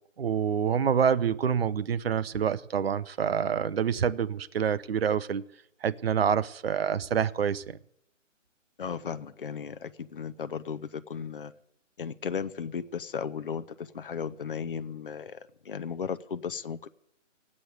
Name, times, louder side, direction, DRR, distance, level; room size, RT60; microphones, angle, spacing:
voice 1, 0.2-5.4 5.8-7.8, right 7 dB, 50° right, 0.6 m, -27 dB
voice 2, 8.8-11.5 12.0-16.9, left 6 dB, 45° left, 0.6 m, -35 dB
16.5 x 8.7 x 9.2 m
hypercardioid pair, 165°, 38 cm